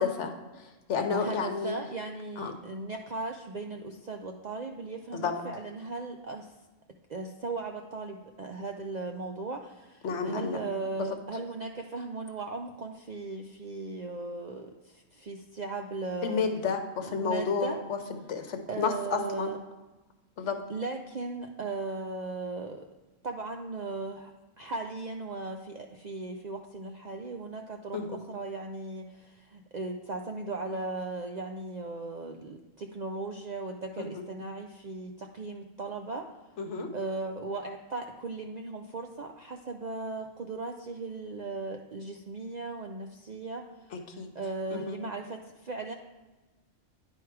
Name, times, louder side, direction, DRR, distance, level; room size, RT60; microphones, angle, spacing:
voice 1, 0.0-1.8 2.4-2.5 5.1-5.4 10.0-10.6 11.0-11.2 16.2-19.5 20.4-20.6 27.9-28.2 34.0-34.2 36.6-36.9 43.9-44.3 44.7-45.0, left 5 dB, 70° left, 6 dB, 1.1 m, -31 dB
voice 2, 1.1-6.5 7.1-16.4 17.0-17.8 18.7-19.6 20.7-22.8 23.2-24.3 24.6-36.4 36.9-43.9 44.3-45.9, right 3 dB, 55° right, 3 dB, 0.4 m, -37 dB
9.7 x 4.7 x 4.6 m, 1.2 s
omnidirectional pair, 1.3 m